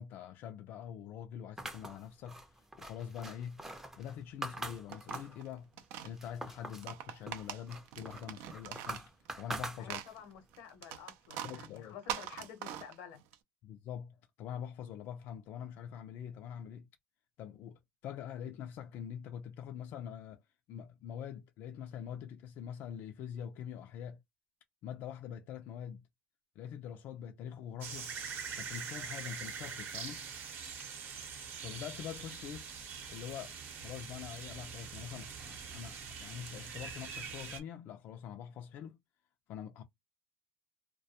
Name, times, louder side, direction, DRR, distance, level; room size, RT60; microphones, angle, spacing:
voice 1, 0.0-3.6 4.0-5.7 6.0-9.0 9.4-10.0 11.4-12.0 13.6-16.9 17.4-20.4 20.7-24.2 24.8-26.0 26.6-28.1 28.6-30.2 31.6-32.7 33.1-33.6 33.8-39.0 39.5-39.8, left 9 dB, 55° left, 0.4 m, -44 dB
sound 1, 1.6-5.4 5.8-6.9 7.3-10.3, right 2 dB, 10° right, 0.5 m, -44 dB
sound 2, 4.6-6.1 6.7-9.6 9.8-13.4, right 10 dB, 75° right, 0.4 m, -43 dB
voice 2, 9.8-13.2, left 8 dB, 80° left, 0.8 m, -50 dB
sound 3, 27.8-37.6, right 6 dB, 50° right, 0.8 m, -44 dB
2.3 x 2.1 x 2.7 m
supercardioid pair, 115°, 4 cm